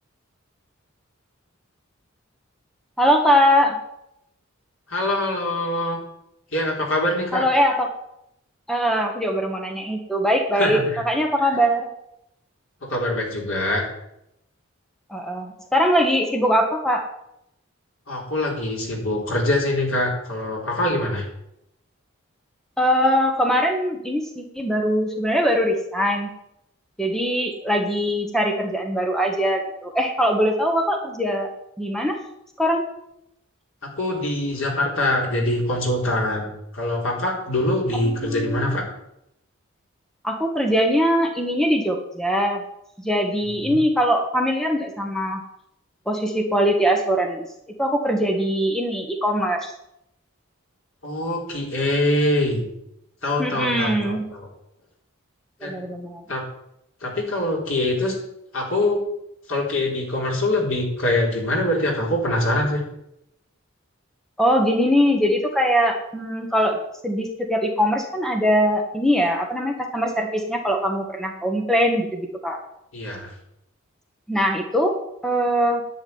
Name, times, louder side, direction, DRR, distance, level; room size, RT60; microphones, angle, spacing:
voice 1, 3.0-3.8 7.3-7.9 8.7-10.8 11.0-11.9 15.1-17.1 22.8-26.3 27.0-31.5 31.8-32.2 32.6-32.8 38.0-38.8 40.2-42.6 43.0-45.4 46.1-47.4 47.8-49.7 53.4-54.3 55.6-56.2 64.4-66.8 67.0-72.6 74.3-74.9 75.2-75.8, equal, ahead, 2 dB, 1.3 m, -21 dB
voice 2, 4.9-6.0 6.5-7.4 10.5-11.0 12.8-13.8 18.1-21.2 34.0-38.8 43.6-43.8 51.0-52.6 53.2-54.5 55.6-55.7 56.3-56.4 57.0-58.2 58.5-59.0 59.5-62.8 72.9-73.3, left 1 dB, 75° left, -1 dB, 4.3 m, -24 dB
10.5 x 7.2 x 9.6 m, 0.81 s
head